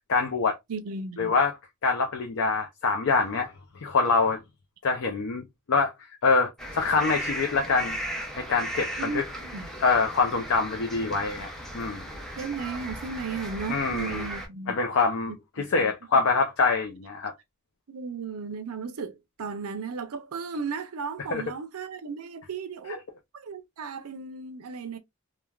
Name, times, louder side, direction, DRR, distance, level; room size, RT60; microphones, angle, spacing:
voice 1, 0.1-0.6 1.2-1.5 1.8-4.4 4.8-5.9 6.2-8.0 8.4-9.2 9.8-11.5 11.7-12.1 13.7-14.3 14.7-17.3 21.3-21.4 22.9-23.0, left 4 dB, 60° left, 0.5 m, -25 dB
voice 2, 0.7-1.3 9.0-9.7 12.4-14.8 15.3-16.2 17.9-23.0 23.3-25.0, right 5 dB, 75° right, 0.5 m, -35 dB
sound 1, 6.6-14.5, equal, ahead, 0.6 m, -36 dB
3.2 x 2.2 x 2.3 m
head